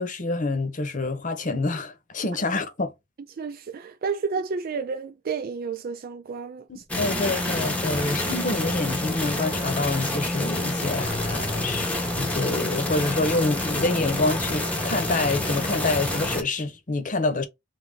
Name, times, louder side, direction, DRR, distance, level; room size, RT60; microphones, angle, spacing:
voice 1, 0.0-2.9 6.7-17.4, left 2 dB, 40° left, 0.9 m, -27 dB
voice 2, 3.3-6.7, right 5 dB, 45° right, 0.4 m, -31 dB
sound 1, 6.9-16.4, left 1 dB, 5° left, 0.9 m, -27 dB
3.5 x 2.8 x 3.9 m
head